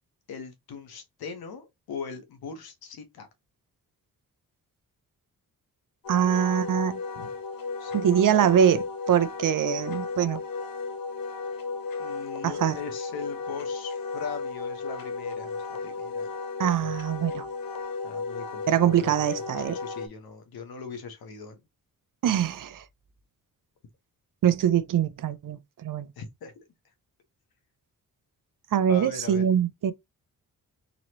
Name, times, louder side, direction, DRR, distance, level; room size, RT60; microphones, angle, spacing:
voice 1, 0.3-3.3 7.1-7.3 7.8-8.7 12.0-16.3 16.8-17.0 18.0-21.6 26.2-26.5 28.9-29.4, left 5 dB, 90° left, 1.3 m, -40 dB
Wind instrument woodwind instrument, 6.0-20.1, left 4 dB, 75° left, 0.9 m, -34 dB
voice 2, 6.1-7.0 7.9-8.8 9.1-10.4 12.4-12.8 16.6-17.5 18.7-19.8 22.2-22.8 24.4-26.1 28.7-29.9, right 9 dB, 60° right, 0.6 m, -23 dB
4.0 x 3.0 x 2.9 m
cardioid pair, 75°, 36 cm